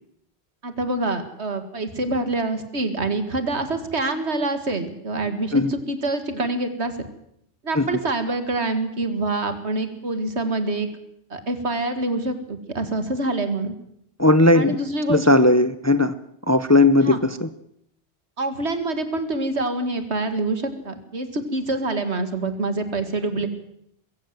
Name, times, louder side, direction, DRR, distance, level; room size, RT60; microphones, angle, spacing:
voice 1, 0.6-7.1 7.6-10.9 11.3-13.7 14.5-15.3 17.0-17.2 18.4-23.5, right 2 dB, 75° right, 9 dB, 2.4 m, -26 dB
voice 2, 14.2-14.8 15.1-16.1 16.5-17.5, left 2 dB, 15° left, 13 dB, 0.7 m, -17 dB
21.5 x 16.0 x 7.6 m, 0.73 s
omnidirectional pair, 1.1 m